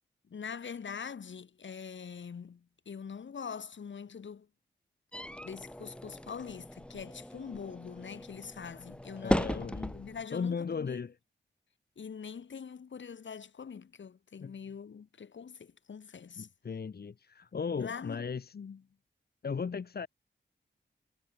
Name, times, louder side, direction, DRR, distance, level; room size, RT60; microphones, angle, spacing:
voice 1, 0.3-4.5 5.4-9.7 10.0-11.1 12.0-16.5 17.8-18.3 18.5-18.8, left 6 dB, 75° left, 2.9 m, -43 dB
sound 1, 5.1-10.3, left 1 dB, 5° left, 1.7 m, -37 dB
voice 2, 9.2-10.0 10.3-11.1 14.4-14.5 16.4-18.5 19.4-20.1, left 5 dB, 55° left, 1.2 m, -36 dB
wide cardioid pair, 85°, 20 cm